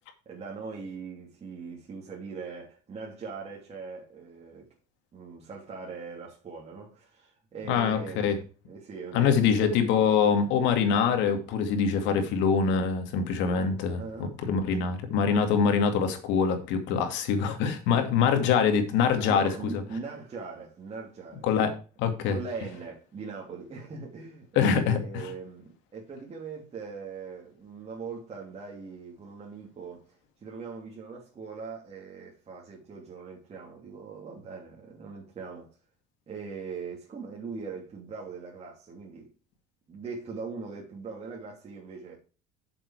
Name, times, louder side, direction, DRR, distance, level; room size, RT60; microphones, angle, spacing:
voice 1, 0.2-4.7 5.1-8.3 8.6-9.6 14.0-14.4 19.3-21.5 22.3-30.0 30.4-35.7 36.3-39.3 39.9-42.2, right 4 dB, 35° right, 3.0 m, -41 dB
voice 2, 7.7-8.4 9.1-19.8 21.4-21.7 22.0-22.4 24.6-25.3, left 6 dB, 75° left, 2.4 m, -24 dB
7.9 x 7.3 x 4.9 m
supercardioid pair, 105°, 19 cm